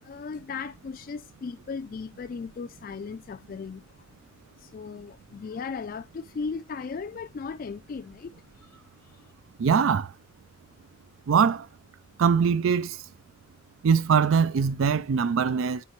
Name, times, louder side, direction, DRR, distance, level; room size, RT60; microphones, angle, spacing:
voice 1, 0.0-4.2 4.6-9.3, left 5 dB, 45° left, 0.3 m, -37 dB
voice 2, 9.6-10.1 11.3-11.7 12.2-13.0 13.8-15.8, right 6 dB, 75° right, 0.4 m, -22 dB
9.6 x 4.1 x 3.0 m
head